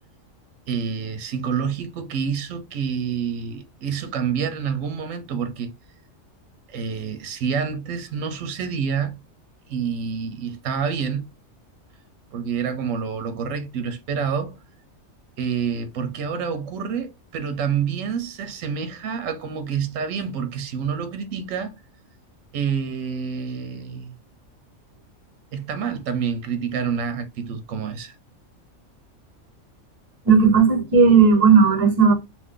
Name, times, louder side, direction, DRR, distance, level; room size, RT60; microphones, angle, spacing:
voice 1, 0.7-5.7 6.7-9.2 9.7-11.3 12.3-14.6 15.4-21.7 22.5-24.1 25.5-28.1, right 6 dB, 90° right, 1.0 m, -28 dB
voice 2, 30.3-32.1, right 5 dB, 40° right, 0.6 m, -14 dB
2.5 x 2.5 x 3.6 m
omnidirectional pair, 1.3 m